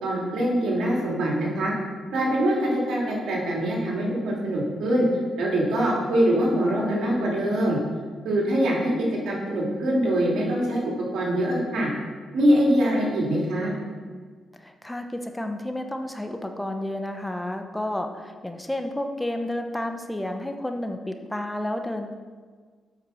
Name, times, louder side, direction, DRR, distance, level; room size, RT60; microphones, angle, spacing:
voice 1, 0.0-1.7 2.1-5.1 5.4-7.8 8.2-8.9 9.2-11.9 12.3-13.7, right 1 dB, 80° right, -3 dB, 2.7 m, -23 dB
voice 2, 14.6-22.1, left 1 dB, 10° left, 5 dB, 0.9 m, -31 dB
8.1 x 6.0 x 6.3 m, 1.5 s
cardioid pair, 65°, 0 cm